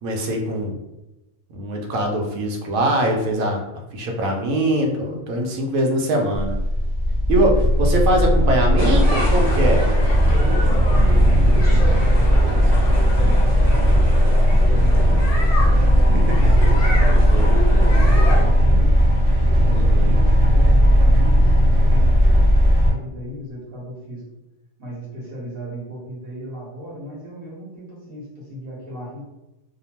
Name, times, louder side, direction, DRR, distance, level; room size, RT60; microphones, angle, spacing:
voice 1, 0.0-0.8 1.5-3.6 3.9-6.5 7.3-9.8 17.3-17.6 19.7-20.1, right 1 dB, 85° right, 1 dB, 1.0 m, -22 dB
sound 1, 6.3-22.9, equal, 20° right, 0.5 m, -16 dB
voice 2, 7.3-7.8 10.6-19.0 19.4-24.4 24.8-29.2, equal, 45° right, -6 dB, 1.1 m, -37 dB
sound 2, 8.8-18.4, equal, 45° left, 0.4 m, -29 dB
2.8 x 2.0 x 2.8 m, 0.97 s
omnidirectional pair, 1.4 m